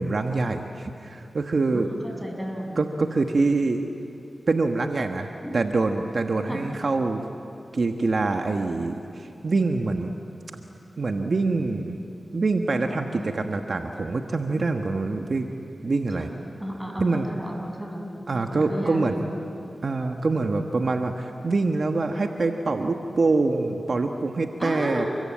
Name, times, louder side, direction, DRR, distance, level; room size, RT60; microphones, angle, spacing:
voice 1, 0.0-1.9 2.8-3.9 4.5-7.2 7.7-10.1 11.0-12.0 12.3-15.5 15.8-16.3 17.0-17.3 18.3-19.2 19.8-25.1, right 3 dB, 60° right, 4 dB, 1.4 m, -25 dB
voice 2, 1.7-2.8 5.4-5.6 6.5-6.6 13.2-13.3 16.1-16.3 16.6-19.4 24.6-25.1, equal, 5° right, 1 dB, 7.0 m, -33 dB
30.0 x 22.5 x 8.8 m, 2.7 s
cardioid pair, 50°, 0 cm